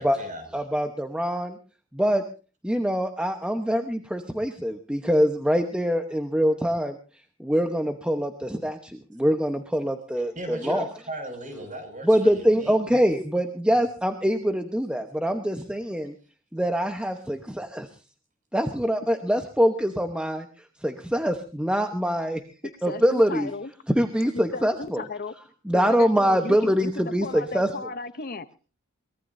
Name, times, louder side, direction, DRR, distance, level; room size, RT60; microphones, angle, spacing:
voice 1, 0.0-0.4 10.3-12.7, right 1 dB, 35° right, 6 dB, 6.2 m, -37 dB
voice 2, 0.5-1.6 1.9-2.2 2.6-7.0 7.4-10.8 12.0-16.1 16.5-17.9 18.5-20.5 20.8-22.4 22.8-23.5 23.9-25.0 25.7-27.7, equal, 5° right, 5 dB, 1.0 m, -24 dB
voice 3, 22.9-23.7 24.3-25.3 25.7-26.9 27.2-28.5, left 3 dB, 45° left, 12 dB, 0.8 m, -35 dB
23.0 x 19.0 x 2.7 m, 0.36 s
head